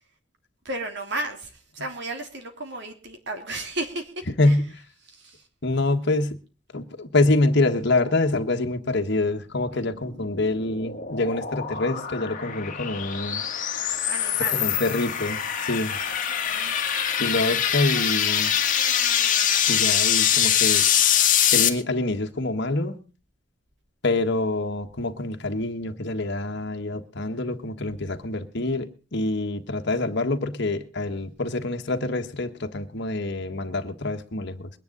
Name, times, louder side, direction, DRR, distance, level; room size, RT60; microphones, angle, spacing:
voice 1, 0.6-4.1 4.4-4.6 5.1-5.4 14.1-14.8 16.1-16.7, right 2 dB, 65° right, 3.2 m, -34 dB
voice 2, 5.6-6.4 6.7-13.4 14.5-16.0 17.2-18.6 19.7-20.8 21.5-23.0 24.0-34.7, left 2 dB, 60° left, 1.5 m, -26 dB
sound 1, 10.0-21.7, left 9 dB, 45° left, 1.8 m, -24 dB
22.0 x 10.5 x 3.9 m
head